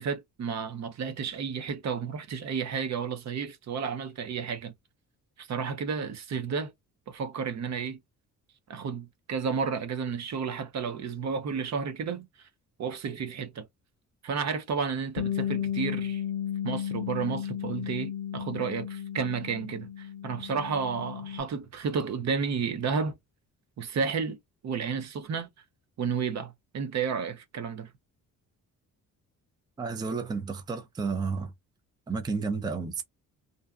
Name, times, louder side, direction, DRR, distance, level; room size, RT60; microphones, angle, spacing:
voice 1, 0.0-4.7 5.4-6.7 7.1-8.0 8.7-12.3 12.8-13.7 14.2-16.2 16.6-23.2 23.8-24.4 24.6-25.5 26.0-27.9, right 6 dB, 55° right, 0.6 m, -32 dB
Bass guitar, 15.2-21.4, left 9 dB, 90° left, 0.5 m, -34 dB
voice 2, 29.8-31.5 32.1-33.0, right 4 dB, 10° right, 0.4 m, -31 dB
2.6 x 2.2 x 2.3 m
cardioid pair, 110°, 34 cm